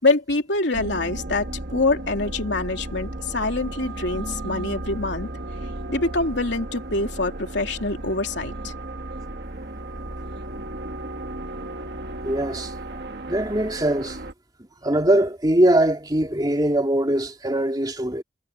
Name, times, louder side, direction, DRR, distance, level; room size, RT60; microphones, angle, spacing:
voice 1, 0.0-5.3 5.9-8.7, left 2 dB, 75° left, 3.1 m, -25 dB
sound 1, 0.7-14.3, right 1 dB, 60° right, 1.7 m, -34 dB
voice 2, 12.2-12.7 13.3-14.2 14.8-18.2, right 1 dB, 20° right, 3.0 m, -21 dB
head